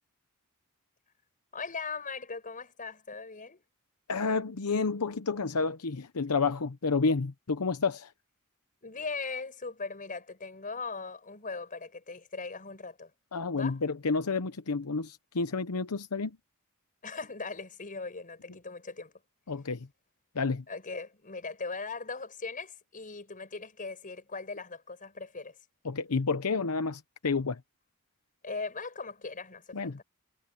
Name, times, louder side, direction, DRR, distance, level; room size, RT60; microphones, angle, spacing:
voice 1, 1.5-3.6 8.8-13.1 13.5-13.8 17.0-19.1 20.7-25.6 28.4-30.0, left 4 dB, 40° left, 5.8 m, -39 dB
voice 2, 4.1-8.1 13.3-16.4 19.5-19.9 20.3-20.6 25.8-27.6 29.7-30.0, left 4 dB, 85° left, 0.9 m, -30 dB
head